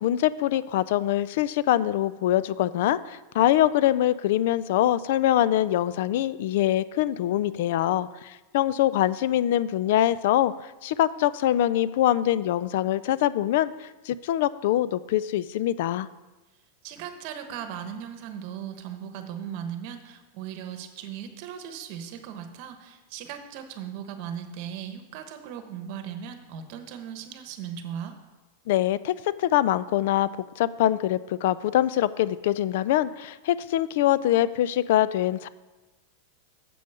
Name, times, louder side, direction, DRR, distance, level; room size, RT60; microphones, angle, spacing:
voice 1, 0.0-16.1 28.7-30.3 30.6-35.5, left 13 dB, 65° left, 17 dB, 0.3 m, -24 dB
voice 2, 16.8-28.2, right 9 dB, 55° right, 7 dB, 1.0 m, -38 dB
7.6 x 5.2 x 6.8 m, 1.1 s
supercardioid pair, 130°, 0 cm